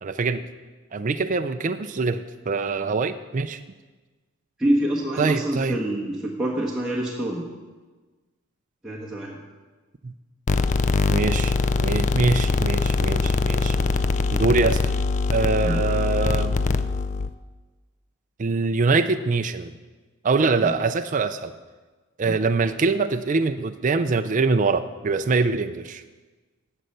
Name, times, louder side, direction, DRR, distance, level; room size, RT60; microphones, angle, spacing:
voice 1, 0.0-0.5 0.9-3.6 5.2-5.8 10.0-10.1 11.1-13.8 14.3-15.0 15.3-16.6 18.4-19.7 20.2-21.5 22.2-26.0, right 4 dB, 35° right, 8 dB, 0.4 m, -24 dB
voice 2, 4.6-7.4 8.8-9.3 15.6-15.8 20.6-20.8 22.2-22.3, right 1 dB, 5° right, -7 dB, 1.3 m, -26 dB
sound 1, 10.5-17.3, left 4 dB, 35° left, 0.4 m, -22 dB
15.5 x 5.6 x 6.6 m, 1.3 s
head